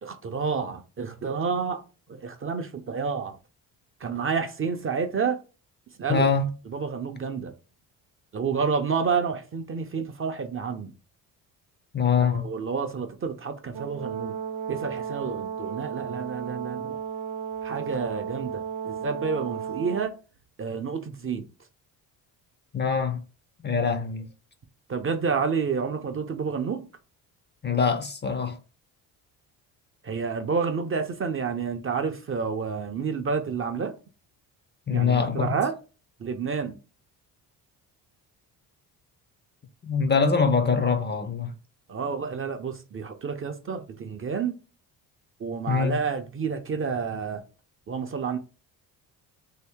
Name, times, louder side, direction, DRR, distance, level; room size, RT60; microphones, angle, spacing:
voice 1, 0.0-1.8 2.1-3.4 4.0-5.4 6.0-6.3 6.7-7.5 8.3-10.9 12.2-14.3 14.7-17.0 17.6-20.2 20.6-21.5 24.9-26.9 30.0-34.0 34.9-35.8 36.2-36.7 41.9-44.6 45.4-47.4 47.9-48.4, right 5 dB, 30° right, 0.5 m, -29 dB
voice 2, 6.1-6.5 11.9-12.5 22.7-23.2 23.6-24.3 27.6-28.6 34.9-35.6 39.8-41.5 45.7-46.0, left 5 dB, 25° left, 0.5 m, -24 dB
Brass instrument, 13.7-20.1, right 8 dB, 75° right, 0.7 m, -34 dB
2.8 x 2.6 x 3.5 m
supercardioid pair, 70°, 44 cm